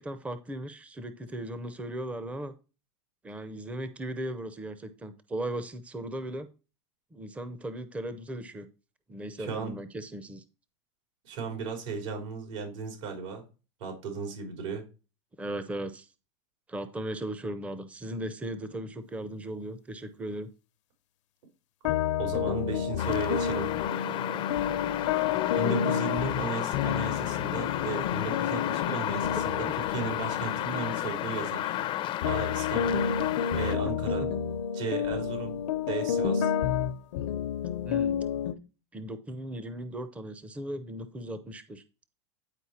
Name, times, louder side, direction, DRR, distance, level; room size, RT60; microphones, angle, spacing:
voice 1, 0.0-2.5 3.2-6.5 7.1-8.7 9.1-10.4 15.4-16.1 16.7-20.5 29.7-29.8 33.7-33.8 37.8-38.2 38.9-41.8, right 1 dB, 10° right, 11 dB, 0.6 m, -37 dB
voice 2, 9.4-9.7 11.2-13.4 13.8-14.8 22.2-23.8 25.6-31.8 32.2-33.1 33.6-34.2 34.7-35.6 35.9-36.5, right 5 dB, 75° right, 3 dB, 3.5 m, -35 dB
sound 1, 21.9-32.0 32.2-38.5, left 8 dB, 75° left, 0.8 m, -30 dB
sound 2, 23.0-33.8, left 13 dB, 35° left, 0.6 m, -32 dB
9.8 x 4.5 x 4.3 m, 0.32 s
supercardioid pair, 145°, 16 cm